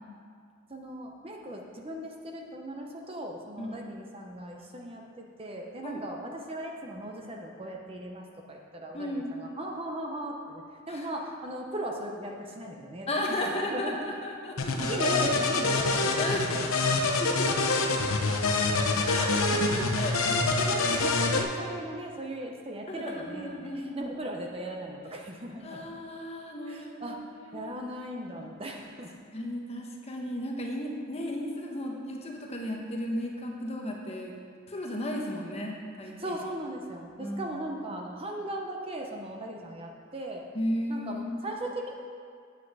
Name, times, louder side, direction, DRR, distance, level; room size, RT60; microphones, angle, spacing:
voice 1, 0.7-13.1 13.5-14.1 14.7-16.3 16.5-17.0 19.1-19.6 20.4-25.9 26.7-27.2 27.5-29.1 36.2-40.4 40.9-41.9, right 1 dB, 25° right, 1 dB, 0.8 m, -38 dB
voice 2, 8.9-9.3 10.9-11.1 13.1-15.2 16.2-16.4 17.2-17.8 19.0-20.8 21.6-21.7 22.9-24.1 25.6-27.7 29.3-34.4 34.7-36.3 37.2-37.6 40.5-41.6, left 1 dB, 30° left, 0 dB, 1.1 m, -35 dB
sound 1, 14.6-21.4, left 3 dB, 85° left, 0.8 m, -26 dB
8.5 x 8.3 x 4.8 m, 2.2 s
head